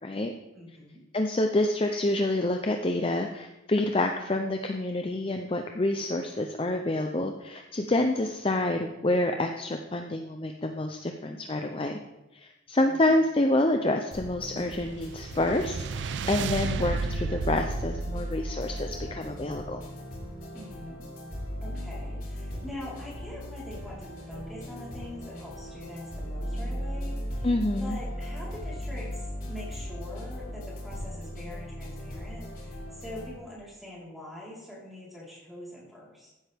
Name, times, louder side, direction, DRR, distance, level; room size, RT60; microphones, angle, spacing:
voice 1, 0.0-0.3 1.1-12.0 12.3-19.8 27.4-28.0, left 1 dB, 25° left, 4 dB, 0.5 m, -28 dB
voice 2, 0.5-1.0 12.8-13.0 20.5-21.1 21.6-27.5 27.8-36.3, left 1 dB, ahead, -7 dB, 4.0 m, -43 dB
sound 1, 14.1-33.3, equal, 45° left, 3.7 m, -37 dB
sound 2, 14.6-20.0, right 6 dB, 60° right, 0.3 m, -35 dB
15.0 x 8.9 x 3.5 m, 0.99 s
head